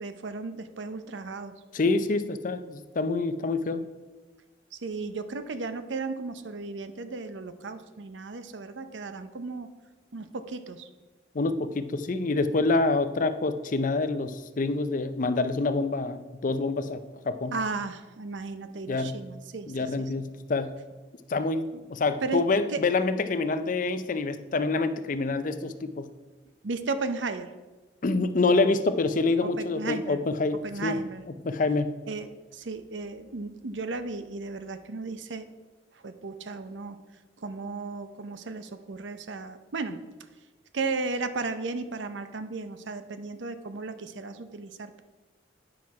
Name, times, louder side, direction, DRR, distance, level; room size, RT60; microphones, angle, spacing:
voice 1, 0.0-1.5 4.8-9.7 10.1-10.9 17.5-19.7 21.7-21.8 22.2-22.4 22.7-22.8 26.6-27.5 29.4-30.2 30.6-31.2 32.1-35.5 36.0-37.0 37.4-40.0 40.7-45.0, right 3 dB, 80° right, 10 dB, 0.7 m, -35 dB
voice 2, 1.7-3.8 11.3-17.6 18.9-19.2 19.7-20.8 21.3-26.1 28.0-31.0 31.4-32.0, left 3 dB, 45° left, 11 dB, 0.5 m, -27 dB
9.5 x 6.0 x 4.7 m, 1.2 s
head